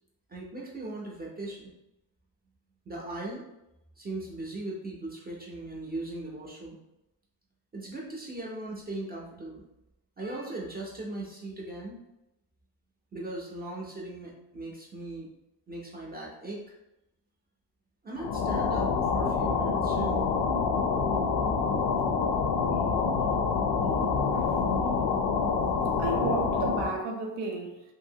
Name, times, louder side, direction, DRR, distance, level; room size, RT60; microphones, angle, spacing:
voice 1, 0.3-1.7 2.9-3.4 4.0-6.8 7.7-9.6 10.2-12.0 13.1-15.3 15.7-16.6 18.0-20.2, right 2 dB, 25° right, 0.4 m, -38 dB
sound 1, 18.2-27.0, left 5 dB, 85° left, 0.5 m, -27 dB
voice 2, 26.0-27.8, right 4 dB, 80° right, 0.7 m, -33 dB
2.7 x 2.6 x 2.7 m
cardioid pair, 160°, 43 cm